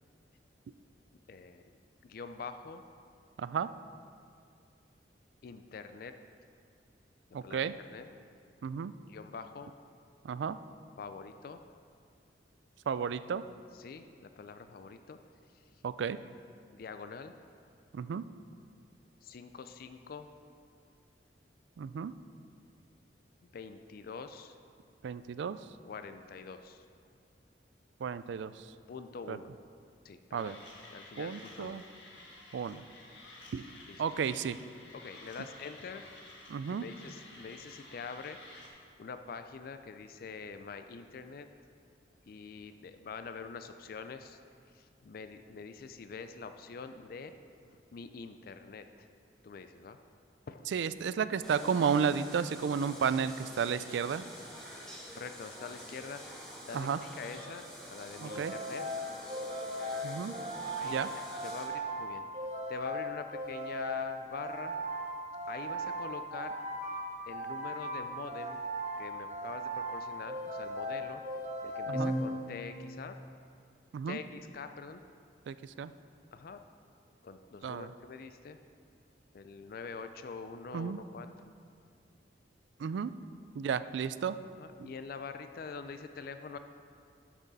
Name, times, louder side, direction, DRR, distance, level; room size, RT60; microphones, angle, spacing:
voice 1, 1.3-1.6 2.0-2.8 5.4-6.1 7.4-8.1 9.1-9.7 11.0-11.6 13.7-15.2 15.5-15.8 16.7-17.3 19.2-20.3 23.4-24.6 25.8-26.9 28.9-29.5 30.0-30.5 30.9-31.8 33.9-34.2 34.9-36.0 36.7-38.4 39.0-41.5 42.3-44.4 44.7-47.3 47.6-49.1 49.4-50.0 50.5-50.7 55.1-56.2 56.6-57.6 57.9-58.9 60.6-62.2 62.7-64.8 65.5-66.5 67.3-68.6 69.0-71.2 71.6-73.2 74.1-75.0 76.3-76.6 77.2-78.6 79.3-81.3 84.6-86.6, left 5 dB, 55° left, 9 dB, 0.4 m, -45 dB
voice 2, 3.4-3.7 7.3-7.7 8.6-8.9 10.2-10.6 12.9-13.4 15.8-16.2 17.9-18.2 21.8-22.1 25.0-25.6 28.0-28.5 29.3-29.4 30.3-30.6 31.2-31.8 32.5-32.8 33.5-33.6 34.0-34.6 36.5-36.8 50.7-54.2 56.7-57.0 58.2-58.5 60.0-60.3 60.8-61.1 71.9-72.1 73.9-74.2 75.5-75.9 77.6-77.9 80.7-81.0 82.8-83.1 83.6-84.4 84.8-84.9, right 6 dB, 75° right, 14 dB, 0.3 m, -32 dB
Mechanisms, 30.4-38.7, left 2 dB, 90° left, 1.6 m, -52 dB
sound 1, 51.4-61.7, equal, 5° left, 1.6 m, -47 dB
sound 2, 58.3-72.8, right 1 dB, 40° right, 1.4 m, -38 dB
12.0 x 6.1 x 4.1 m, 2.3 s
head